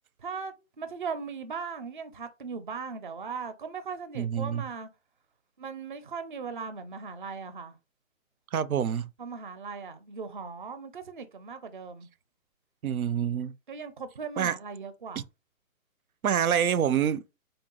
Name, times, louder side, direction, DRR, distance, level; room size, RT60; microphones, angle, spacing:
voice 1, 0.2-4.9 5.6-7.8 9.2-12.1 13.7-15.2, right 5 dB, 40° right, 0.5 m, -38 dB
voice 2, 4.2-4.6 8.5-9.1 12.8-13.5 14.4-14.5 16.2-17.2, right 8 dB, 85° right, 0.6 m, -26 dB
3.8 x 2.3 x 3.7 m
hypercardioid pair, 155°, 42 cm